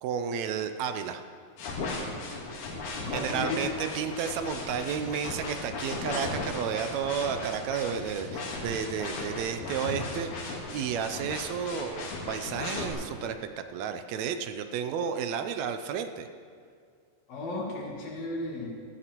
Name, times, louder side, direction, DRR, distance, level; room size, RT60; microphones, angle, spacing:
voice 1, 0.0-1.2 3.1-16.3, right 7 dB, 80° right, 8 dB, 1.8 m, -32 dB
sound 1, 1.6-12.9, left 3 dB, 90° left, 2.9 m, -36 dB
voice 2, 3.0-3.7 17.3-18.7, left 2 dB, 70° left, -2 dB, 3.3 m, -35 dB
17.0 x 14.0 x 3.0 m, 2.1 s
omnidirectional pair, 3.3 m